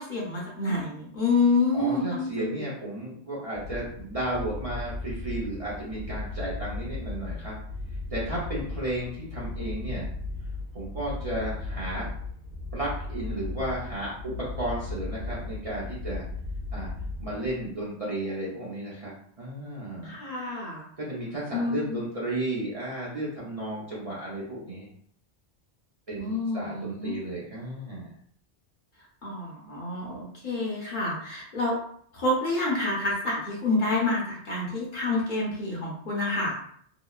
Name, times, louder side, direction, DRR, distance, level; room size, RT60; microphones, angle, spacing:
voice 1, 0.0-2.7 20.0-20.8 21.5-22.0 26.2-27.1 29.2-31.8 32.1-36.6, left 2 dB, 50° left, -4 dB, 0.8 m, -28 dB
voice 2, 1.7-7.6 8.1-10.1 10.7-12.1 12.7-16.2 16.7-16.9 17.2-20.2 21.0-24.9 26.1-28.1, right 1 dB, 40° right, -7 dB, 0.6 m, -33 dB
sound 1, 3.5-17.8, left 2 dB, 85° right, 1.1 m, -36 dB
2.9 x 2.0 x 2.3 m, 0.63 s
omnidirectional pair, 1.1 m